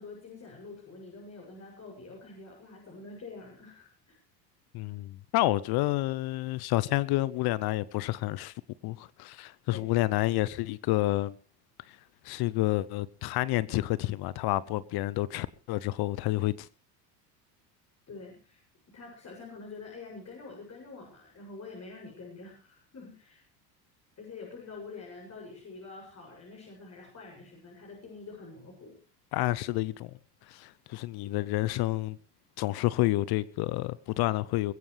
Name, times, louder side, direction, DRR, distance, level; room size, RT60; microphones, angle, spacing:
voice 1, 0.0-4.2 9.7-9.9 18.1-18.6 18.9-23.4 24.2-28.9, left 3 dB, 30° left, 7.7 m, -46 dB
voice 2, 4.7-8.5 8.8-11.3 11.9-12.0 12.2-16.7 29.3-30.1 30.5-32.2 32.6-34.7, left 17 dB, 50° left, 0.9 m, -29 dB
21.5 x 16.0 x 3.4 m
hypercardioid pair, 85°, 49 cm